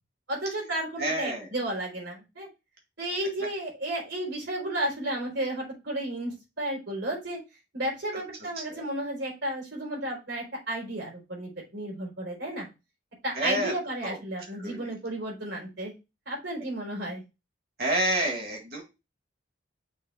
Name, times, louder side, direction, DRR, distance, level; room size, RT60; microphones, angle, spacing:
voice 1, 0.3-2.5 3.0-7.4 7.7-12.7 13.2-15.9 16.3-17.2, right 1 dB, 75° right, -2 dB, 3.9 m, -33 dB
voice 2, 1.0-1.5 8.7-8.8 13.4-13.7 14.0-14.2 14.6-14.9 17.8-18.8, right 1 dB, 50° right, 1 dB, 2.0 m, -28 dB
6.5 x 3.3 x 4.8 m, 0.26 s
head